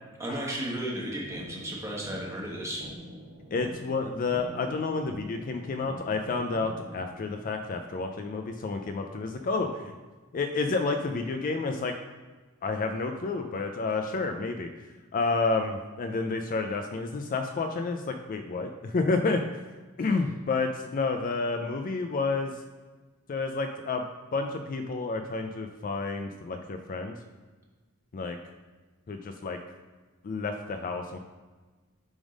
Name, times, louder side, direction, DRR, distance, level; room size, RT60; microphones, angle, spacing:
voice 1, 0.2-2.8, right 1 dB, 15° right, -3 dB, 1.3 m, -34 dB
sound 1, 1.3-7.3, equal, 85° right, 2.1 m, -45 dB
voice 2, 3.5-9.9 10.3-11.9 12.6-14.7 15.1-19.4 20.0-22.5 23.3-24.0 24.3-27.1 28.1-28.4 29.1-29.6 30.2-31.2, left 3 dB, 40° left, 5 dB, 0.4 m, -30 dB
7.1 x 3.5 x 5.1 m, 1.3 s
head